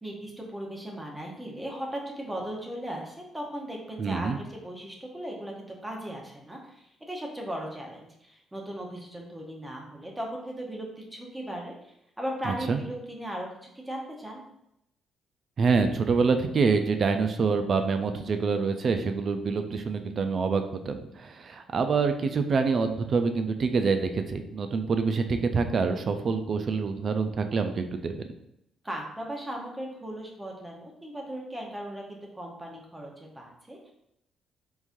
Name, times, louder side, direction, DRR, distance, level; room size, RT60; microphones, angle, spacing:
voice 1, 0.0-11.8 12.2-14.4 28.8-33.9, right 1 dB, 15° right, 0 dB, 0.8 m, -37 dB
voice 2, 4.0-4.4 12.5-12.8 15.6-28.2, right 4 dB, 50° right, 7 dB, 0.3 m, -26 dB
3.6 x 3.0 x 2.6 m, 0.80 s
cardioid pair, 90°, 0 cm